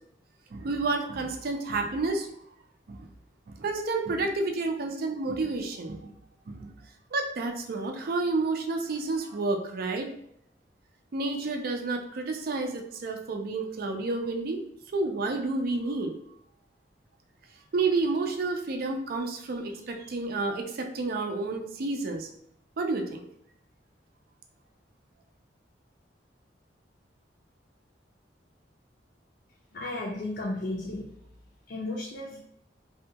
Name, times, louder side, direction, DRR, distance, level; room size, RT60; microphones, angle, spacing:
voice 1, 0.5-2.3 2.9-3.1 3.5-6.1 6.5-6.7 7.1-10.1 11.1-14.6 14.9-16.1 17.7-22.3 22.8-23.2, right 3 dB, 55° right, 4 dB, 0.4 m, -30 dB
voice 2, 29.7-31.0 31.7-32.4, left 2 dB, 60° left, -4 dB, 0.5 m, -34 dB
2.7 x 2.2 x 2.7 m, 0.72 s
head